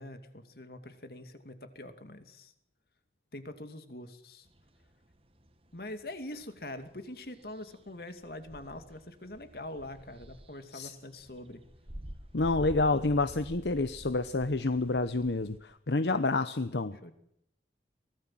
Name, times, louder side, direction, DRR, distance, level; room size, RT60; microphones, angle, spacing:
voice 1, 0.0-2.5 3.3-4.5 5.7-11.6 17.0-17.1, left 1 dB, 60° left, 8 dB, 2.6 m, -44 dB
sound 1, 4.5-15.6, equal, 30° right, 2.0 m, -49 dB
voice 2, 12.3-17.0, left 3 dB, 75° left, 12 dB, 0.9 m, -28 dB
24.0 x 18.0 x 7.5 m, 0.75 s
head